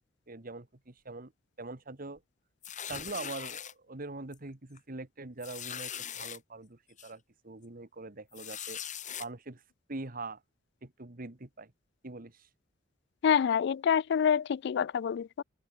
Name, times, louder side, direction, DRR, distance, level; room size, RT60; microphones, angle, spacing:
voice 1, 0.3-1.3 1.6-2.2 2.9-8.8 9.2-9.6 9.9-10.4 10.8-11.7 12.0-12.5, right 3 dB, 50° right, 1.6 m, -43 dB
sound 1, 2.6-3.7 4.3-4.5 4.8-4.9 5.4-6.4 7.0-7.1 8.3-9.3, left 9 dB, 40° left, 4.1 m, -40 dB
voice 2, 13.2-15.4, left 7 dB, 60° left, 0.3 m, -27 dB
head